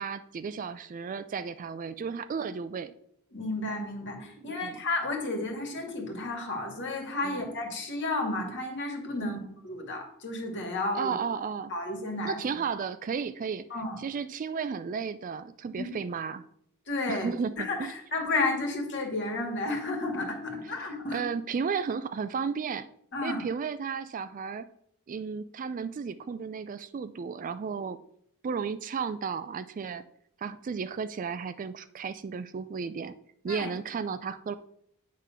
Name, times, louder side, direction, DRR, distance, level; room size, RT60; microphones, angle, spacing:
voice 1, 0.0-2.9 4.4-4.8 7.2-7.4 9.2-9.4 10.9-11.7 12.2-13.7 14.0-16.4 17.1-17.9 20.8-22.9 23.2-24.7 25.1-28.0 28.4-30.0 30.4-33.1 33.4-34.5, right 6 dB, 40° right, 13 dB, 0.3 m, -34 dB
voice 2, 3.3-9.4 9.6-11.1 11.7-12.4 13.7-14.0 15.8-15.9 16.9-17.3 17.6-21.2 23.1-23.4 33.5-33.7, left 2 dB, 55° left, 1 dB, 2.0 m, -32 dB
9.0 x 3.7 x 5.6 m, 0.71 s
head